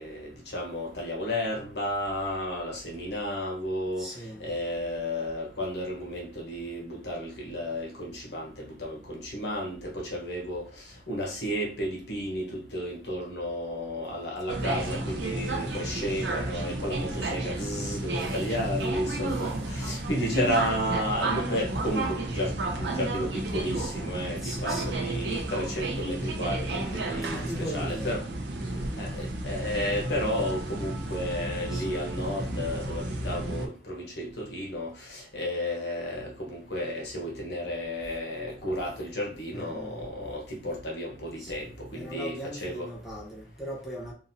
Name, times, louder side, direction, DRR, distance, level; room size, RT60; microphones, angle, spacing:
voice 1, 0.0-4.1 4.4-28.2 29.0-42.4 42.6-42.9, equal, 70° left, 1.1 m, -32 dB
voice 2, 4.0-4.5 18.1-18.8 19.1-19.5 20.1-20.4 24.4-25.1 26.7-28.2 28.6-28.9 31.7-32.0 39.5-40.0 41.4-44.1, equal, ahead, 0.9 m, -40 dB
sound 1, 14.5-33.7, right 2 dB, 75° right, 0.5 m, -32 dB
3.8 x 2.6 x 2.7 m
head